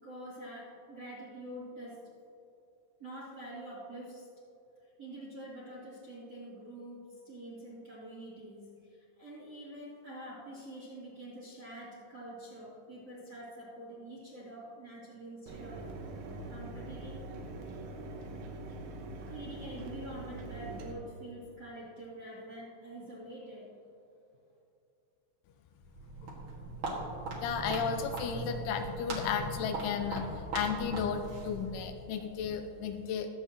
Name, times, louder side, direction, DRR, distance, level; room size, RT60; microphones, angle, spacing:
voice 1, 0.0-2.0 3.0-4.3 4.8-15.9 16.5-17.3 19.3-23.8, right 1 dB, 30° right, -8 dB, 1.9 m, -46 dB
Mechanisms, 15.5-20.9, right 2 dB, 80° right, 3.6 m, -43 dB
Walk footsteps, 25.8-32.0, right 2 dB, 55° right, 2.4 m, -40 dB
voice 2, 27.4-33.3, left 6 dB, 85° left, 6 dB, 3.0 m, -34 dB
23.0 x 7.9 x 2.9 m, 2.8 s
omnidirectional pair, 5.5 m